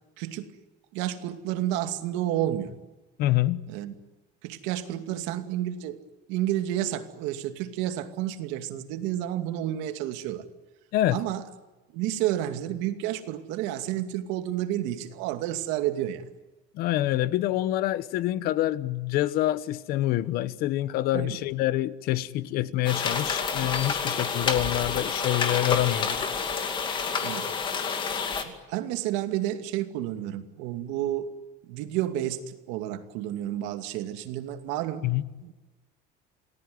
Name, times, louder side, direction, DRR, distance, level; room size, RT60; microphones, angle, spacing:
voice 1, 0.2-0.5 0.9-2.7 3.7-3.9 4.4-6.0 6.3-10.4 11.1-11.4 11.9-16.2 21.1-21.4 27.2-27.5 28.4-31.3 31.7-35.1 35.4-35.5, right 12 dB, 80° right, 2.5 m, -30 dB
voice 2, 3.2-3.7 10.9-11.2 16.7-26.3 35.0-35.2, left 14 dB, 55° left, 1.0 m, -26 dB
sound 1, 22.8-28.4, left 5 dB, 25° left, 2.4 m, -29 dB
28.5 x 19.0 x 9.6 m
cardioid pair, 175°, 19 cm